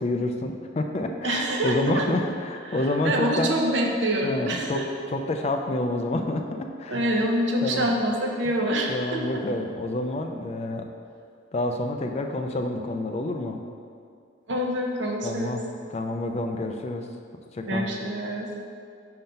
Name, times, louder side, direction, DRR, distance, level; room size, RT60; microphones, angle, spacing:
voice 1, 0.0-3.5 4.2-4.8 5.1-7.0 7.6-7.9 8.9-10.9 11.5-13.6 15.2-15.6 15.9-17.1 17.5-17.9, left 2 dB, 35° left, 4 dB, 0.3 m, -28 dB
voice 2, 1.2-2.0 2.7-4.9 6.9-9.4 14.5-15.6 17.7-18.5, right 1 dB, 70° right, 0 dB, 0.8 m, -26 dB
5.2 x 3.9 x 5.6 m, 2.3 s
head